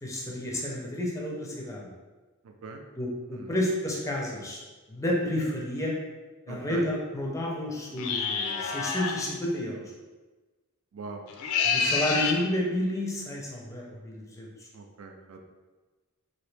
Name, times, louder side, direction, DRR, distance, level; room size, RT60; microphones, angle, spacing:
voice 1, 0.0-1.9 3.0-4.6 4.9-5.9 6.5-9.9 11.6-14.7, left 1 dB, 15° left, -2 dB, 0.5 m, -31 dB
voice 2, 2.4-2.8 3.3-3.5 6.5-6.8 10.9-11.2 14.7-15.4, right 4 dB, 65° right, 4 dB, 0.4 m, -41 dB
sound 1, 8.0-9.2 11.3-12.4, left 5 dB, 75° left, 0.4 m, -27 dB
3.0 x 2.6 x 3.3 m, 1.3 s
head